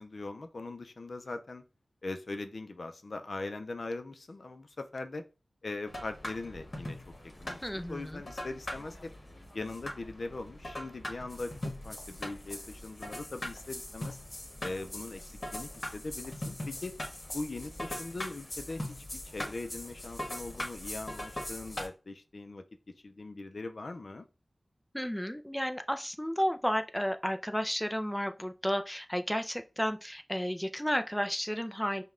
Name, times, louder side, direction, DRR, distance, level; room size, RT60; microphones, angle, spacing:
voice 1, 0.0-1.6 2.0-5.3 5.6-7.0 7.4-9.1 9.5-11.5 11.8-14.2 14.6-16.9 17.3-19.0 19.3-24.3, left 2 dB, 70° left, 7 dB, 0.4 m, -41 dB
sound 1, 5.9-21.9, left 1 dB, 45° left, 1.2 m, -41 dB
voice 2, 7.6-8.2 24.9-32.0, equal, 5° left, 7 dB, 0.3 m, -32 dB
5.2 x 2.2 x 3.6 m, 0.32 s
wide cardioid pair, 65°, 0 cm